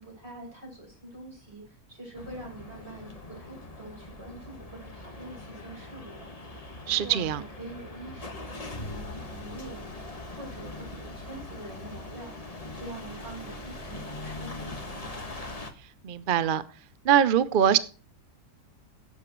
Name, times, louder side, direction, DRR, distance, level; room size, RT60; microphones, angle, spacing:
voice 1, 0.0-6.7 7.0-9.9 10.4-15.2, right 2 dB, 45° right, 7.0 m, -45 dB
sound 1, 2.2-15.7, left 2 dB, 25° left, 1.5 m, -41 dB
voice 2, 6.9-7.4 16.0-16.6 17.1-17.8, right 9 dB, 60° right, 0.5 m, -22 dB
16.0 x 7.9 x 3.0 m
omnidirectional pair, 1.6 m